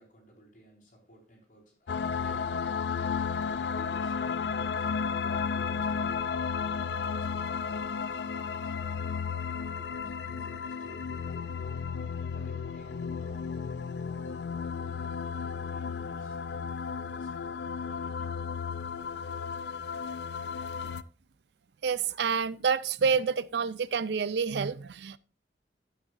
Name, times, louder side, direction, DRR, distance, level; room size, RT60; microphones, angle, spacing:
voice 1, 0.0-9.2 9.6-11.6 12.3-14.4 15.3-16.4 17.0-18.3, right 1 dB, 45° left, 5.0 m, -55 dB
sound 1, 1.9-21.0, left 6 dB, 70° left, 0.4 m, -33 dB
voice 2, 21.8-25.2, right 6 dB, 70° right, 0.4 m, -28 dB
11.5 x 9.5 x 2.6 m
head